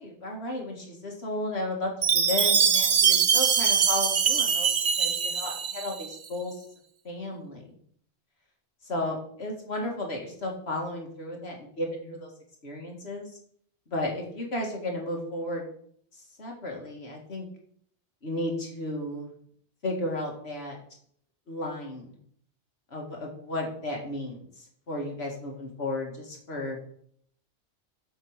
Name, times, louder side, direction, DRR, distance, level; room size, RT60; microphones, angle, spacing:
voice 1, 0.0-4.7 5.0-6.6 7.0-7.6 8.9-12.3 12.6-13.3 13.9-15.7 16.4-17.5 18.2-19.3 19.8-20.8 21.5-22.2 22.9-26.8, left 1 dB, 65° left, 0 dB, 2.1 m, -33 dB
Chime, 2.0-6.1, right 7 dB, 45° right, 0.7 m, -23 dB
7.9 x 4.7 x 6.4 m, 0.63 s
omnidirectional pair, 1.2 m